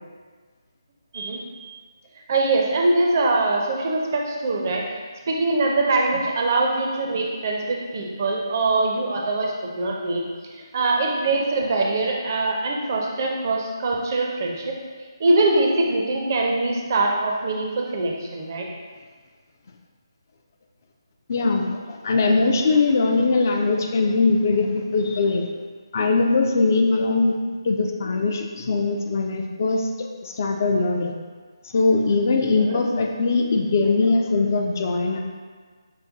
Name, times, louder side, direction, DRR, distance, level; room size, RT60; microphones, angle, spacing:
voice 1, 2.3-4.8 5.3-10.2 10.5-14.8 15.2-18.7 32.6-32.8, right 2 dB, 40° right, -1 dB, 0.5 m, -23 dB
voice 2, 21.3-25.5 25.9-27.4 27.6-29.9 30.2-31.1 31.6-35.2, left 3 dB, 40° left, 2 dB, 0.3 m, -21 dB
6.4 x 2.2 x 2.6 m, 1.5 s
figure-of-eight pair, 150°, 3 cm